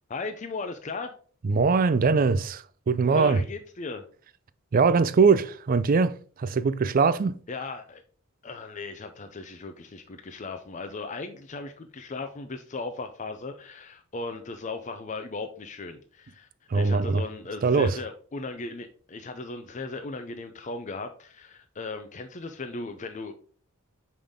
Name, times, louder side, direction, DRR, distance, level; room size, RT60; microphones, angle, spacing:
voice 1, 0.1-1.1 3.1-4.0 7.5-8.0 8.4-16.5 16.7-23.3, left 3 dB, 35° left, 0.5 m, -37 dB
voice 2, 1.4-3.4 4.7-7.4 16.7-17.2 17.6-18.0, right 4 dB, 40° right, 0.4 m, -22 dB
5.8 x 5.2 x 3.6 m
head